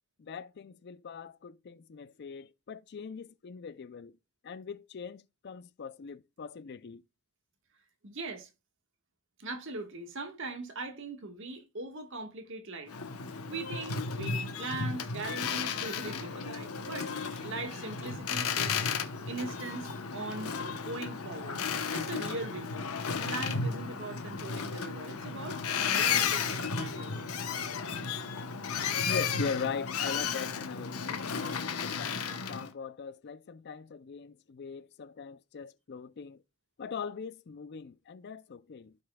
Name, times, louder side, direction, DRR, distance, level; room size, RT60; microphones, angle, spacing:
voice 1, 0.2-4.2 4.4-7.0 29.0-36.4 36.8-39.0, left 6 dB, 50° left, 0.4 m, -41 dB
voice 2, 8.0-8.5 9.4-13.0 13.5-18.7 19.3-21.6 21.9-22.9 23.2-25.6 25.9-27.3, right 3 dB, 60° right, 1.5 m, -40 dB
Boat Water vehicle, 12.9-32.7, left 6 dB, 85° left, 1.0 m, -34 dB
15.0 x 5.4 x 2.3 m
head